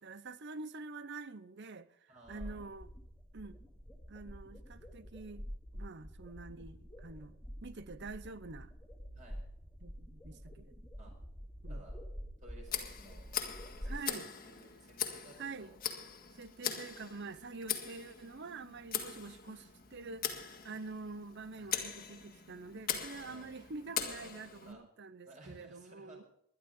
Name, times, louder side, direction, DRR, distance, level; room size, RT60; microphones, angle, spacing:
voice 1, 0.0-2.9 3.3-3.6 4.1-5.5 5.7-8.7 9.8-10.7 11.6-11.8 13.8-14.3 15.4-15.7 16.3-26.2, right 3 dB, 50° right, 0.8 m, -47 dB
voice 2, 2.1-2.7 9.1-9.4 11.0-11.1 11.7-12.0 12.4-13.3 13.8-15.8 21.6-21.7 23.2-23.5 24.6-24.8 25.2-26.2, right 1 dB, 35° right, 5.0 m, -56 dB
sound 1, 2.2-14.0, equal, 5° left, 2.5 m, -47 dB
Tick, 12.7-24.7, left 8 dB, 40° left, 1.9 m, -41 dB
21.0 x 11.5 x 3.8 m
head